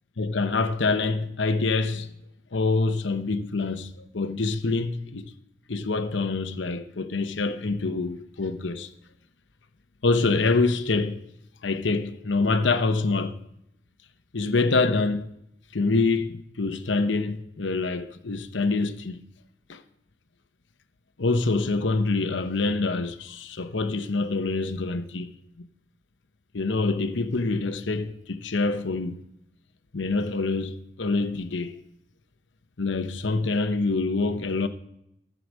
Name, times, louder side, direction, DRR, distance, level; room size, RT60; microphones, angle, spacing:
voice 1, 0.2-2.1 2.5-5.3 5.7-8.9 10.0-11.2 11.6-13.4 14.3-15.3 15.7-19.2 19.7-19.8 21.2-25.3 26.5-29.2 29.9-31.8 32.8-34.7, left 3 dB, 75° left, 0.9 m, -26 dB
14.5 x 4.9 x 6.2 m
head